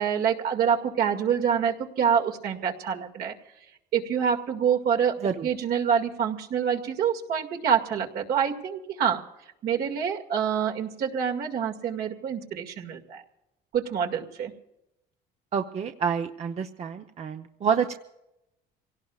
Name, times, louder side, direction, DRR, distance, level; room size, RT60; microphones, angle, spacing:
voice 1, 0.0-3.3 3.9-5.2 5.4-9.2 9.6-13.2 13.7-14.5, right 7 dB, 70° right, 2 dB, 2.1 m, -26 dB
voice 2, 15.5-17.9, right 7 dB, 40° right, 5 dB, 0.8 m, -28 dB
27.0 x 17.5 x 2.4 m, 0.87 s
cardioid pair, 110°, 17 cm